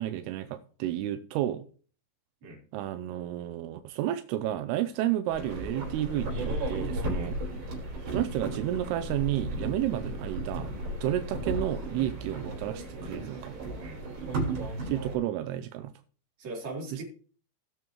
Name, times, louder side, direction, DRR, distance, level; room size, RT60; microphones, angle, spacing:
voice 1, 0.0-1.7 2.7-7.4 8.1-10.7 11.0-13.6 14.9-15.9 16.9-17.0, right 13 dB, 85° right, 2.3 m, -31 dB
sound 1, 5.3-15.2, right 1 dB, 65° right, 6.0 m, -34 dB
voice 2, 7.1-7.4 11.0-11.2 13.8-14.2 16.4-17.0, right 2 dB, 40° right, 4.4 m, -41 dB
19.0 x 6.7 x 3.1 m
omnidirectional pair, 5.3 m